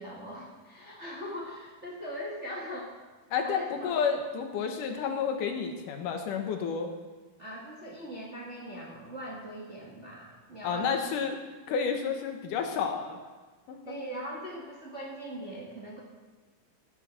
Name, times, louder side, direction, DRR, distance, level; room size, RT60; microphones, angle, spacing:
voice 1, 0.0-2.9 3.4-4.0 7.4-11.0 13.8-16.0, equal, 30° right, -4 dB, 1.3 m, -40 dB
voice 2, 3.3-6.9 10.6-11.4 11.7-13.2 13.7-13.9, left 6 dB, 80° left, 4 dB, 2.6 m, -30 dB
15.5 x 8.7 x 4.2 m, 1.4 s
omnidirectional pair, 3.7 m